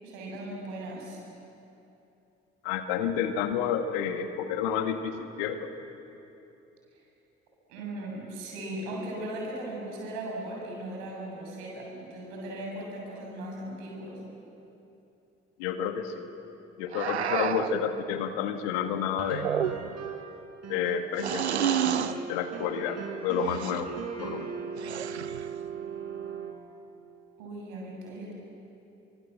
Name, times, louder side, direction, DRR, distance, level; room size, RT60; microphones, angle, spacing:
voice 1, 0.0-1.2 7.7-14.2 27.4-28.3, right 1 dB, 70° right, -2 dB, 7.5 m, -38 dB
voice 2, 2.6-5.7 15.6-16.2 16.8-19.5 20.7-21.4 22.3-24.5, left 8 dB, 70° left, 8 dB, 1.8 m, -30 dB
sound 1, 16.9-17.8 19.3-20.1 21.2-22.2 23.4-23.8 24.8-25.5, right 9 dB, 85° right, 0.7 m, -29 dB
sound 2, 19.2-20.3 20.6-26.5, right 6 dB, 50° right, 4.1 m, -38 dB
29.5 x 25.0 x 7.8 m, 2.9 s
figure-of-eight pair, 45°, 32 cm